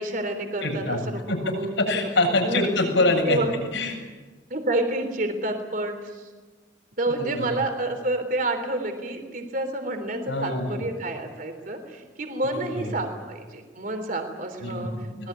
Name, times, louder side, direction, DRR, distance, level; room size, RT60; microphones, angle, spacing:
voice 1, 0.0-2.1 2.4-2.6 3.2-3.6 4.5-6.2 7.0-14.9 15.2-15.3, right 2 dB, 50° right, 6 dB, 3.3 m, -29 dB
voice 2, 0.6-1.0 1.3-3.4 3.7-3.9 7.1-7.5 10.3-10.8 12.5-12.9 14.6-15.3, left 2 dB, 90° left, 1 dB, 7.7 m, -25 dB
24.5 x 20.0 x 9.2 m, 1.3 s
head